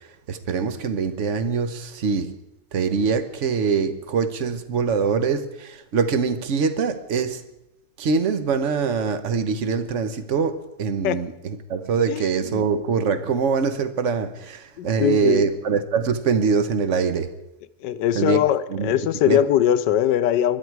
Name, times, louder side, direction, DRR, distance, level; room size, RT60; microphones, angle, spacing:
voice 1, 0.3-2.3 2.7-7.4 8.0-17.3 18.1-18.4 18.7-18.9 19.3-19.4, right 5 dB, 50° right, 1.2 m, -23 dB
voice 2, 12.1-12.6 14.8-15.5 17.8-20.6, left 11 dB, 75° left, 1.3 m, -21 dB
21.0 x 12.5 x 4.7 m
omnidirectional pair, 2.0 m